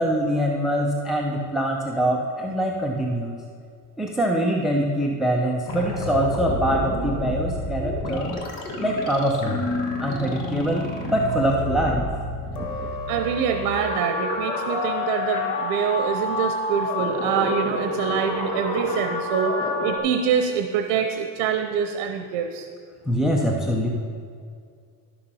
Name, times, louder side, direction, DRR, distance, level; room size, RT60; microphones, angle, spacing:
voice 1, 0.0-3.4 4.0-8.3 8.8-9.6 10.0-12.1 12.6-12.9 23.1-23.9, right 1 dB, ahead, 0 dB, 0.5 m, -24 dB
sound 1, 5.7-20.0, left 2 dB, 50° left, 1.5 m, -28 dB
voice 2, 13.1-19.6 19.8-22.7, right 8 dB, 85° right, 5 dB, 0.8 m, -25 dB
11.5 x 7.0 x 5.5 m, 2.2 s
cardioid pair, 155°, 42 cm